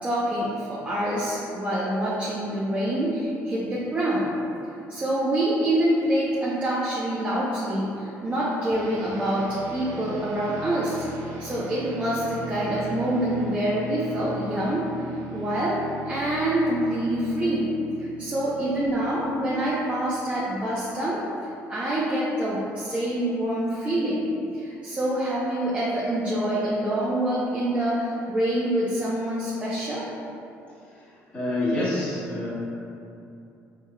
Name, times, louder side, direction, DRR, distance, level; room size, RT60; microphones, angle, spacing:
voice 1, 0.0-4.3 4.9-11.0 11.4-14.9 15.3-15.8 16.0-17.7 18.0-21.2 21.7-30.1, right 1 dB, 25° right, -8 dB, 0.7 m, -26 dB
sound 1, 8.7-20.4, right 3 dB, 75° right, 0.6 m, -39 dB
voice 2, 31.3-32.5, left 1 dB, 20° left, -10 dB, 1.2 m, -26 dB
4.6 x 3.7 x 2.2 m, 2.7 s
cardioid pair, 100°, 6 cm